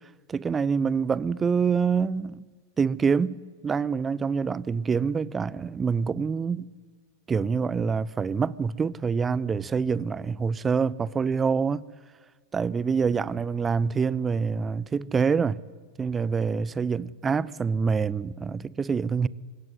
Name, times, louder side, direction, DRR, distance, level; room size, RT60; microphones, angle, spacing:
voice 1, 0.3-2.5 2.8-3.4 3.6-6.7 7.3-11.8 12.5-15.6 16.0-19.3, right 5 dB, 20° right, 0.7 m, -26 dB
25.0 x 21.5 x 9.7 m
figure-of-eight pair, 90°, 0 cm